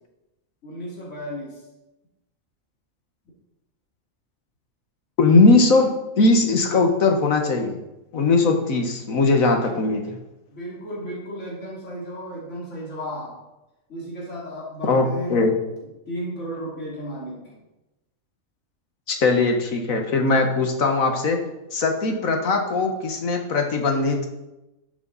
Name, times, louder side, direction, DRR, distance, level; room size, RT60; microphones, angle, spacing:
voice 1, 0.6-1.6 9.6-9.8 10.5-13.3 13.9-15.4 15.7-17.6, equal, 60° left, -5 dB, 3.3 m, -34 dB
voice 2, 5.2-7.8 8.1-10.0 14.8-15.5 19.1-21.4 21.7-24.3, left 3 dB, 85° left, 4 dB, 1.7 m, -20 dB
13.0 x 7.1 x 4.1 m, 0.98 s
omnidirectional pair, 1.4 m